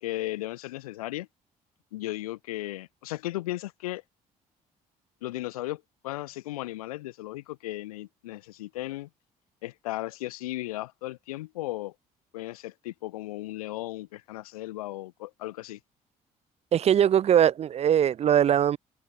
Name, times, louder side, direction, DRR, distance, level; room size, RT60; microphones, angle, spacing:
voice 1, 0.0-1.3 1.9-4.0 5.2-9.1 9.6-11.9 12.3-15.8, left 17 dB, 90° left, 0.6 m, -36 dB
voice 2, 16.7-18.8, right 9 dB, 35° right, 0.3 m, -21 dB
hypercardioid pair, 50°, 18 cm